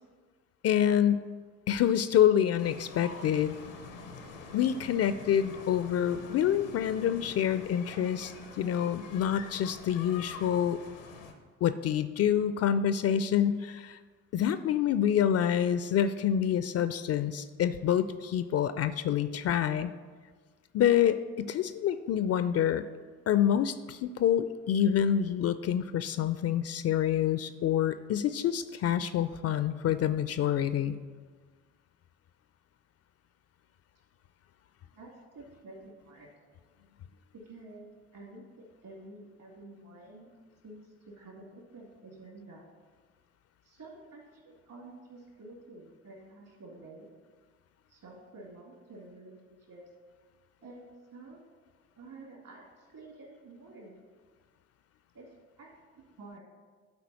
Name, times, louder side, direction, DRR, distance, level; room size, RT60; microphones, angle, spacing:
voice 1, 0.6-1.3 1.7-3.5 4.5-10.8 11.6-14.0 14.3-19.9 20.7-22.8 23.3-31.0, left 9 dB, 40° left, 12 dB, 0.4 m, -27 dB
sound 1, 2.6-11.3, left 4 dB, 85° left, 0.8 m, -46 dB
voice 2, 34.9-36.3 37.3-40.3 40.6-42.6 43.6-47.1 47.9-49.8 50.6-51.4 52.0-54.0 55.1-55.3 55.6-55.7 56.0-56.4, right 2 dB, 55° right, 0 dB, 2.4 m, -50 dB
11.5 x 4.2 x 4.1 m, 1.5 s
hypercardioid pair, 45°, 38 cm